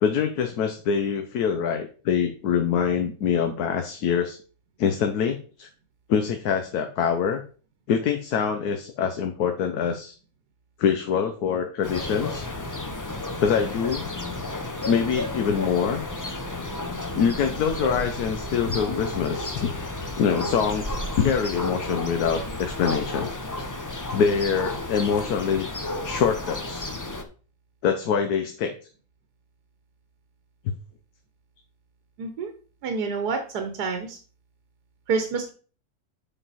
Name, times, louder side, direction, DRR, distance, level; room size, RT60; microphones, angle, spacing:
voice 1, 0.0-4.4 4.8-5.7 6.1-7.4 7.9-10.1 10.8-12.5 13.4-14.1 14.8-16.0 17.1-19.7 20.2-23.3 24.1-25.7 26.0-26.9 27.8-28.7 30.6-30.7, left 7 dB, 75° left, 6 dB, 1.3 m, -24 dB
sound 1, 11.8-27.2, left 2 dB, 25° left, 0.4 m, -32 dB
voice 2, 32.2-32.5 32.8-34.2 35.1-35.5, right 5 dB, 80° right, 6 dB, 1.5 m, -28 dB
7.1 x 5.6 x 4.1 m, 0.39 s
omnidirectional pair, 1.7 m